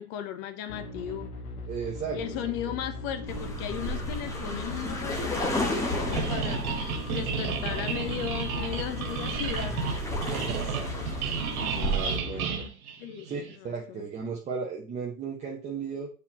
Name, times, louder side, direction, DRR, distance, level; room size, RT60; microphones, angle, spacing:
voice 1, 0.0-1.3 2.1-9.8 13.0-13.3 13.6-14.1, left 10 dB, 30° left, 0.7 m, -36 dB
sound 1, 0.7-12.7, left 2 dB, 90° left, 1.9 m, -40 dB
voice 2, 1.7-2.5 10.3-12.6 13.2-16.1, right 5 dB, 15° right, 1.0 m, -36 dB
sound 2, 3.3-12.2, equal, 5° left, 1.0 m, -33 dB
sound 3, 6.1-13.6, right 6 dB, 70° right, 1.7 m, -33 dB
8.1 x 4.5 x 2.9 m
hypercardioid pair, 135°, 44 cm